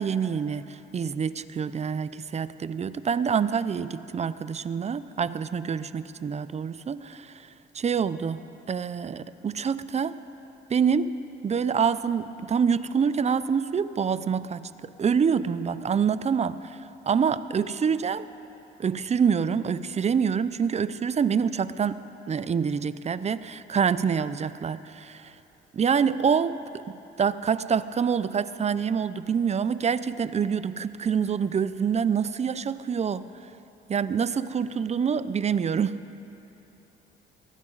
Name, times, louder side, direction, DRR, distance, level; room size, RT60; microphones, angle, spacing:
voice 1, 0.0-7.5 7.7-10.2 10.7-11.2 11.4-16.8 17.1-18.3 18.8-25.3 25.7-33.3 33.9-36.0, right 6 dB, 35° right, 15 dB, 0.6 m, -26 dB
22.5 x 16.0 x 4.0 m, 2.8 s
cardioid pair, 90°, 20 cm